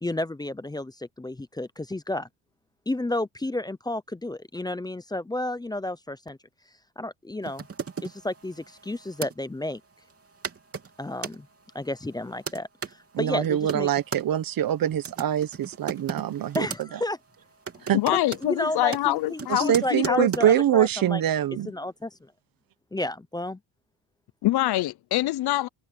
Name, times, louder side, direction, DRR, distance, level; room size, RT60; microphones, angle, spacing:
voice 1, 0.0-2.3 2.9-6.4 7.0-7.7 8.0-9.8 11.0-11.5 11.7-13.9 16.5-17.2 18.1-21.2 21.6-22.3 22.9-23.6, left 1 dB, 10° left, 0.6 m, -31 dB
sound 1, 7.4-9.3 10.1-10.2 10.4-11.4 12.0-12.9 13.4-14.2 14.9-16.8 17.1-17.3 17.7-20.5, right 6 dB, 35° right, 3.3 m, -37 dB
voice 2, 13.1-16.7 17.9-18.0 19.5-21.7, right 11 dB, 50° right, 1.1 m, -24 dB
voice 3, 17.9-20.3 24.4-25.7, left 16 dB, 65° left, 0.7 m, -25 dB
cardioid pair, 125°, 42 cm